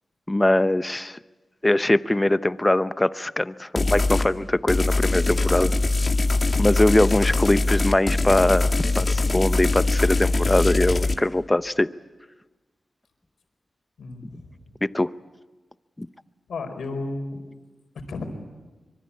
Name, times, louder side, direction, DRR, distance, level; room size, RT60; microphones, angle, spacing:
voice 1, 0.3-1.2 1.6-5.7 6.6-11.9 14.8-15.1 16.0-16.1, left 1 dB, 20° left, 14 dB, 0.8 m, -22 dB
sound 1, 3.8-4.3 4.7-11.1, left 2 dB, 45° left, 1.9 m, -22 dB
voice 2, 14.0-14.7 16.5-17.4 18.1-18.2, left 3 dB, 85° left, 5 dB, 4.6 m, -33 dB
24.5 x 23.0 x 8.6 m, 1.2 s
cardioid pair, 60°, 0 cm